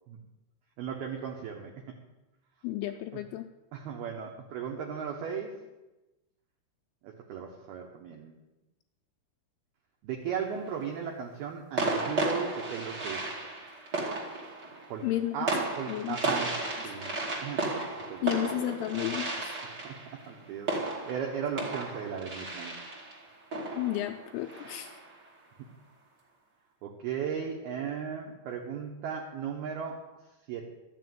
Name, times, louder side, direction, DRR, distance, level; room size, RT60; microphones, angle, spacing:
voice 1, 0.8-1.9 3.7-5.6 7.0-8.4 10.0-13.2 14.9-15.1 15.3-16.5 16.8-17.1 17.4-17.7 18.1-18.9 19.6-22.7 25.6-25.7 26.8-30.0 30.5-30.7, right 7 dB, 70° right, 1 dB, 2.4 m, -36 dB
voice 2, 2.6-3.5 15.0-15.4 15.9-16.2 16.8-17.0 17.8-17.9 18.2-19.6 23.8-25.0, left 14 dB, 85° left, 4 dB, 2.9 m, -32 dB
sound 1, 10.3-10.9 11.8-25.2, right 2 dB, 45° right, 1.4 m, -34 dB
13.0 x 7.0 x 9.3 m, 1.1 s
omnidirectional pair, 6.0 m